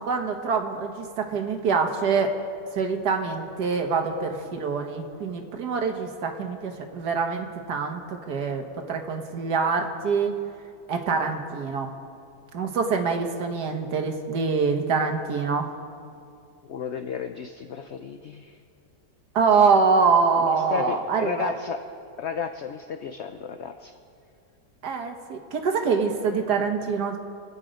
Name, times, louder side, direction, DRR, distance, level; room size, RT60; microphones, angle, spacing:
voice 1, 0.1-2.4 2.7-10.3 10.9-11.9 12.5-15.7 19.4-21.5 24.8-27.2, right 5 dB, 70° right, 4 dB, 1.8 m, -25 dB
voice 2, 16.7-18.6 20.4-21.8 22.2-23.9, left 7 dB, 65° left, 8 dB, 0.7 m, -33 dB
27.0 x 9.1 x 5.2 m, 2.4 s
omnidirectional pair, 1.8 m